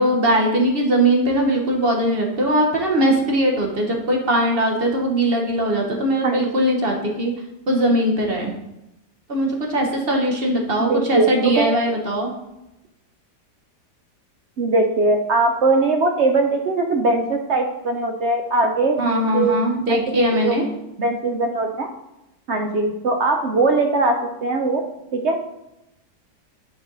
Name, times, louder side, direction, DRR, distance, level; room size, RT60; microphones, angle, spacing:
voice 1, 0.0-7.3 7.7-8.5 9.3-12.3 19.0-20.6, right 1 dB, 40° right, 1 dB, 1.1 m, -20 dB
voice 2, 10.8-11.7 14.6-19.5 19.9-20.6 21.0-21.9 22.5-24.8 25.1-25.4, right 2 dB, 65° right, 4 dB, 0.7 m, -20 dB
9.2 x 3.9 x 3.8 m, 0.89 s
omnidirectional pair, 1.8 m